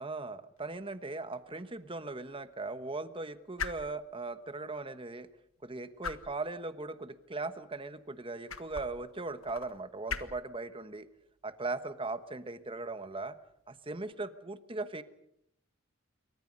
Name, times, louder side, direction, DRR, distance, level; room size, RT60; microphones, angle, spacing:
voice 1, 0.0-5.3 5.6-11.1 11.4-13.4 13.7-15.0, right 3 dB, 25° right, 11 dB, 1.2 m, -39 dB
sound 1, 0.6-14.1, left 6 dB, 80° left, 1.6 m, -47 dB
27.5 x 24.0 x 5.4 m, 0.77 s
head